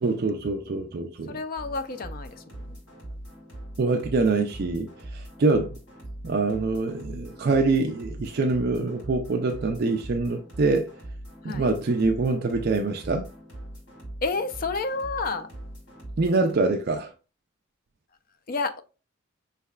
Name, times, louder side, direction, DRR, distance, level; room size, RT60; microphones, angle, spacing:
voice 1, 0.0-1.4 3.8-5.8 6.2-10.9 11.4-13.3 16.2-17.1, right 3 dB, 50° right, 0.4 m, -25 dB
voice 2, 1.3-2.8 8.7-8.9 11.4-11.7 14.2-15.5 18.5-18.8, left 3 dB, 45° left, 0.4 m, -30 dB
sound 1, 1.6-16.5, right 1 dB, 65° left, 2.4 m, -41 dB
5.6 x 3.3 x 2.3 m
head